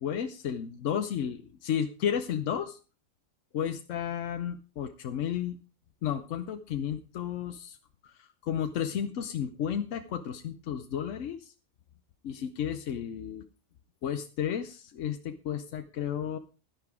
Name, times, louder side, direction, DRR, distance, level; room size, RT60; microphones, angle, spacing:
voice 1, 0.0-2.8 3.5-5.6 6.0-7.8 8.0-11.5 12.2-13.4 14.0-16.4, left 9 dB, 85° left, 8 dB, 1.1 m, -33 dB
10.5 x 10.5 x 4.8 m, 0.34 s
omnidirectional pair, 1.3 m